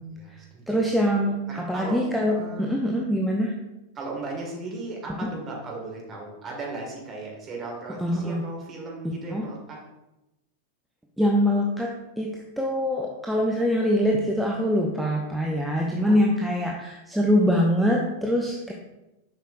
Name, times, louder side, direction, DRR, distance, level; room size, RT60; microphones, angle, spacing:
voice 1, 0.1-0.9 1.5-2.0 2.3-2.8 3.9-9.8 15.9-16.2, right 2 dB, 25° right, -1 dB, 1.8 m, -37 dB
voice 2, 0.7-3.5 8.0-8.4 9.3-9.4 11.2-11.9 12.2-18.7, equal, ahead, -2 dB, 0.7 m, -24 dB
7.2 x 5.6 x 2.5 m, 0.96 s
figure-of-eight pair, 90°, 0 cm